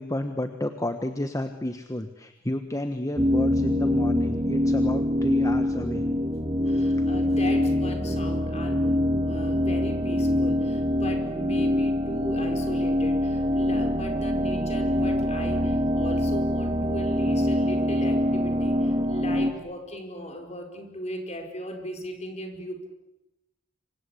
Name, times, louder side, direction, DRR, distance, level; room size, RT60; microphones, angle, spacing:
voice 1, 0.0-6.1, left 1 dB, 15° left, 8 dB, 1.3 m, -31 dB
sound 1, 3.2-19.5, left 1 dB, 25° right, 2.0 m, -24 dB
voice 2, 6.6-22.9, equal, 35° left, 4 dB, 4.9 m, -37 dB
28.0 x 24.5 x 8.5 m, 0.93 s
head